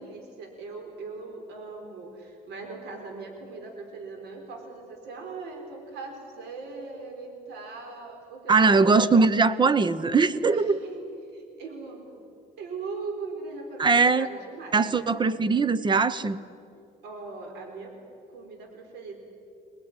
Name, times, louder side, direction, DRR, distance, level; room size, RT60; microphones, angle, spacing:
voice 1, 0.0-8.8 10.5-11.0 11.3-12.2 12.6-15.2 17.0-18.0 18.3-19.2, right 4 dB, 85° right, 3 dB, 4.2 m, -40 dB
voice 2, 8.5-10.8 13.8-14.3 14.7-16.4, right 4 dB, 25° right, 16 dB, 1.0 m, -21 dB
24.0 x 19.5 x 9.9 m, 2.5 s
cardioid pair, 110°, 17 cm